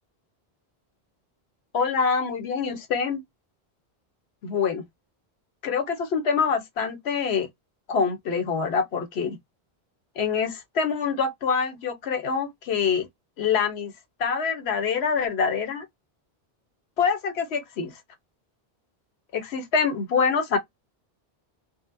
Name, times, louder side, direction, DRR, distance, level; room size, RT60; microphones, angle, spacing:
voice 1, 1.7-3.2 4.4-4.8 5.6-7.5 7.9-9.4 10.2-13.1 13.4-13.9 14.2-15.9 17.0-17.9 19.3-20.6, left 6 dB, 80° left, 1.1 m, -25 dB
3.9 x 2.1 x 2.5 m
omnidirectional pair, 1.1 m